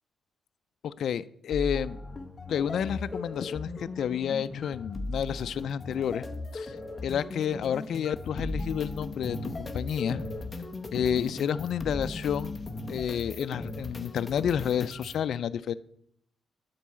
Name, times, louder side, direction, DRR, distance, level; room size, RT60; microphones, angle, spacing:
voice 1, 0.8-2.0 2.5-6.3 6.5-6.8 7.0-10.2 10.9-12.6 12.9-15.7, left 8 dB, 65° left, 12 dB, 0.4 m, -30 dB
sound 1, 1.5-15.2, left 2 dB, 20° left, 0.9 m, -37 dB
11.5 x 4.6 x 7.5 m, 0.70 s
wide cardioid pair, 150°, 0 cm